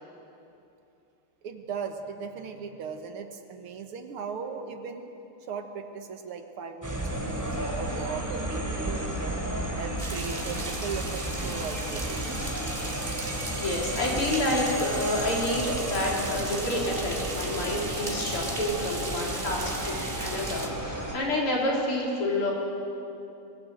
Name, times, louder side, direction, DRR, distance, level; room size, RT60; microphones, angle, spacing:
voice 1, 1.4-5.1 5.5-9.4 9.8-12.3, right 5 dB, 75° right, 6 dB, 2.2 m, -38 dB
sound 1, 6.8-21.1, right 1 dB, 10° right, 2.6 m, -33 dB
sound 2, 10.0-20.7, right 2 dB, 25° right, 2.0 m, -38 dB
voice 2, 13.3-22.5, left 1 dB, 80° left, -2 dB, 4.5 m, -29 dB
22.5 x 16.5 x 7.9 m, 2.8 s
omnidirectional pair, 2.4 m